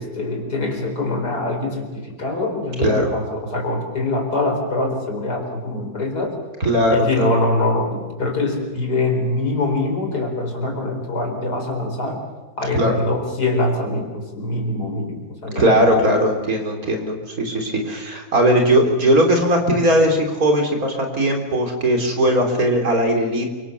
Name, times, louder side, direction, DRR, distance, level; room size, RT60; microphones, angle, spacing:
voice 1, 0.0-6.4 6.9-12.2 12.6-16.4, left 2 dB, 70° left, 3 dB, 5.0 m, -24 dB
voice 2, 2.8-3.1 6.6-7.3 12.7-13.0 15.6-23.5, equal, 60° right, 3 dB, 4.2 m, -18 dB
28.0 x 25.0 x 7.1 m, 1.3 s
omnidirectional pair, 1.8 m